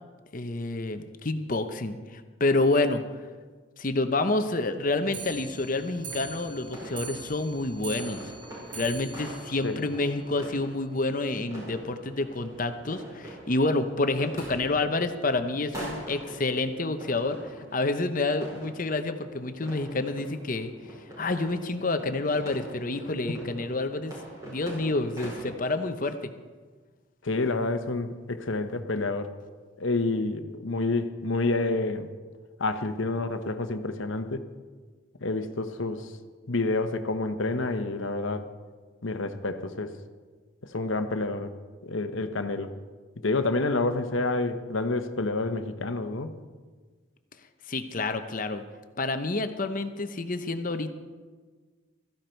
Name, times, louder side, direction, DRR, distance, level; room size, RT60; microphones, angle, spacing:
voice 1, 0.3-3.0 3.8-8.2 8.7-20.7 21.2-24.1 24.4-26.3 47.7-48.6 49.0-50.9, left 2 dB, 40° left, 8 dB, 0.8 m, -28 dB
Clock, 5.0-10.5 10.9-11.0 11.2-11.3 11.7-11.8 12.0-12.1 12.8-12.9 13.6-13.7 14.4-14.5, right 4 dB, 40° right, 5.2 m, -43 dB
sound 1, 6.1-25.5, right 1 dB, 15° right, 5.4 m, -44 dB
voice 2, 27.2-29.3 29.8-32.1 32.6-34.4 35.2-36.1 36.5-38.4 39.0-39.9 40.7-41.5 41.8-42.7 43.2-46.3, left 2 dB, 75° left, 9 dB, 1.0 m, -28 dB
16.0 x 14.5 x 4.5 m, 1.4 s
head